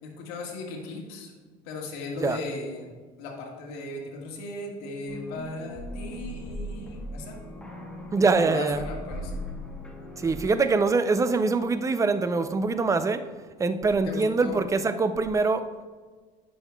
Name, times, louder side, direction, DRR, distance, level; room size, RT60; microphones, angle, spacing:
voice 1, 0.0-1.3 1.6-2.9 3.2-7.4 8.1-9.3 14.0-14.6, left 3 dB, 80° left, 1.7 m, -37 dB
sound 1, 5.1-10.5, equal, 5° left, 1.0 m, -38 dB
voice 2, 8.1-8.9 10.2-13.3 13.6-15.7, right 4 dB, 20° right, 0.5 m, -24 dB
9.6 x 6.3 x 2.3 m
supercardioid pair, 100°, 16 cm